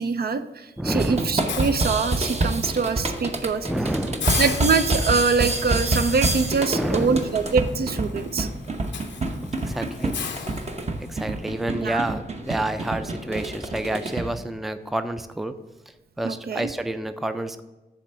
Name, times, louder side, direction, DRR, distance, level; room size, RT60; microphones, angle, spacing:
voice 1, 0.0-3.7 4.4-8.5 11.7-12.0 16.2-16.7, right 5 dB, 60° right, 10 dB, 0.5 m, -24 dB
voice 2, 0.8-1.3 3.7-4.4 4.7-4.8 6.7-7.3 9.4-10.6 11.1-15.5 16.2-17.6, right 1 dB, ahead, 10 dB, 0.4 m, -29 dB
sound 1, 1.0-14.3, right 2 dB, 35° right, 0.9 m, -27 dB
Hiss, 1.5-2.6 3.1-3.3 3.6-3.7 4.2-11.3, left 7 dB, 85° left, 0.7 m, -36 dB
9.9 x 3.4 x 6.1 m, 1.1 s
cardioid pair, 75°, 18 cm